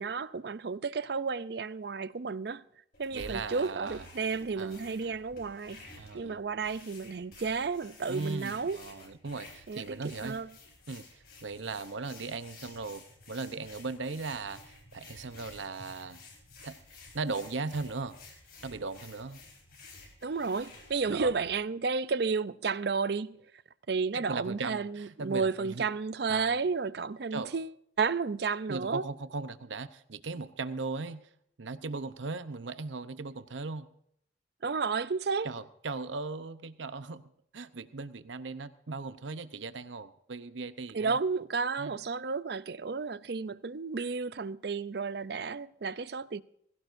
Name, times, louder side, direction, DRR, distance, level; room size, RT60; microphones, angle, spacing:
voice 1, 0.0-2.6 3.0-5.8 6.1-8.8 9.7-10.5 20.2-23.5 23.9-29.0 34.6-35.5 40.9-46.4, right 4 dB, 60° right, 0.5 m, -32 dB
sound 1, 2.9-21.6, left 2 dB, 50° left, 4.3 m, -52 dB
voice 2, 3.1-4.1 4.6-4.9 6.0-6.4 8.1-10.4 10.9-16.2 16.6-16.8 17.1-18.2 18.6-19.4 21.1-21.3 24.1-25.9 26.3-26.6 27.3-27.5 28.7-31.2 31.6-33.9 35.4-37.2 37.5-41.2 41.8-42.0, right 3 dB, 85° right, 0.8 m, -38 dB
20.5 x 16.5 x 2.6 m
head